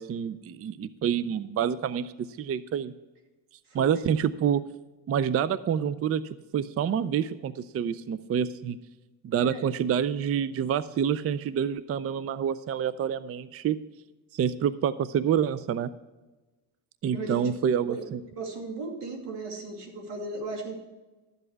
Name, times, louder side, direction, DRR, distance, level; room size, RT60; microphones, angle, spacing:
voice 1, 0.0-2.9 3.7-4.6 5.1-6.2 6.5-8.8 9.2-13.8 14.3-15.9 17.0-18.2, right 8 dB, 35° right, 15 dB, 0.4 m, -27 dB
voice 2, 3.7-4.0 9.5-9.6 17.1-17.5 17.9-18.1 18.4-20.8, right 3 dB, 90° right, 2 dB, 2.5 m, -36 dB
12.5 x 7.8 x 4.6 m, 1.1 s
cardioid pair, 100°, 40 cm